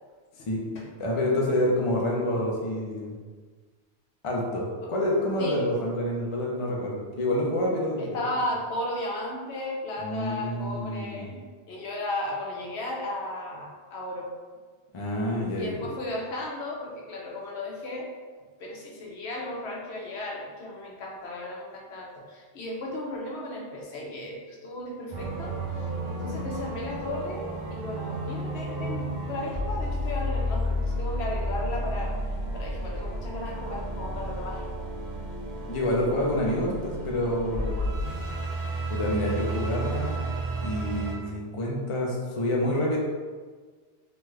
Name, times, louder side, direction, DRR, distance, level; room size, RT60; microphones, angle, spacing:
voice 1, 1.0-3.2 4.2-8.2 10.0-11.3 14.9-15.9 35.7-37.9 38.9-40.3 40.6-43.0, left 1 dB, 40° left, -2 dB, 0.4 m, -28 dB
voice 2, 8.0-11.4 11.7-14.3 15.6-18.1 18.6-32.1 32.5-34.6 35.3-35.4, left 1 dB, 70° left, -2 dB, 0.9 m, -35 dB
sound 1, 25.1-41.1, right 1 dB, 50° right, 0.6 m, -32 dB
3.0 x 2.3 x 3.2 m, 1.5 s
omnidirectional pair, 1.2 m